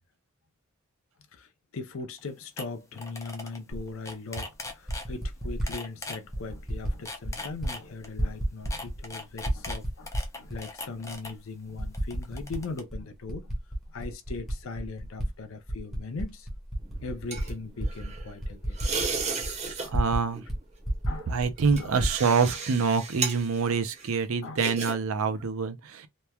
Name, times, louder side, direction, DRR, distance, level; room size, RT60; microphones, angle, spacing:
voice 1, 1.3-13.5 13.9-16.5 17.0-18.8 19.8-20.0 21.1-21.4 21.8-22.0 23.6-23.8 24.4-24.6, left 3 dB, 70° left, 0.5 m, -39 dB
sound 1, 2.2-2.3 2.6-2.7 3.0-3.6 3.9-5.1 5.7-6.2 6.9-8.1 8.7-11.3 11.9-12.8, left 3 dB, 15° left, 0.5 m, -39 dB
Typing, 3.7-3.8 4.7-5.7 6.3-7.0 7.2-7.7 8.0-9.1 9.4-10.6 11.1-11.2 11.8-12.6 12.9-15.3 15.6-20.2 20.5-20.6 20.8-22.2, right 1 dB, ahead, 0.8 m, -31 dB
sound 2, 16.8-18.3 18.7-19.9 20.2-20.5 21.1-24.9 25.3-25.5, right 5 dB, 30° right, 0.8 m, -34 dB
voice 2, 19.9-20.4 21.3-26.1, right 5 dB, 80° right, 0.5 m, -26 dB
2.9 x 2.2 x 2.2 m
head